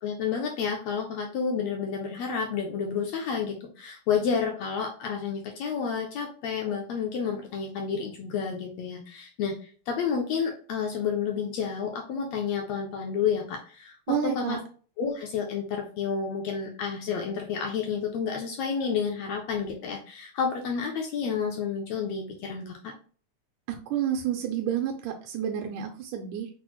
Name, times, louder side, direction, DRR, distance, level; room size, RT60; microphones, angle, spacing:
voice 1, 0.0-9.5 9.9-13.9 14.2-14.6 15.0-22.9, left 6 dB, 80° left, 1 dB, 1.5 m, -30 dB
voice 2, 14.1-14.6 23.7-26.5, right 9 dB, 85° right, 2 dB, 2.0 m, -30 dB
5.9 x 2.0 x 2.9 m, 0.41 s
omnidirectional pair, 3.6 m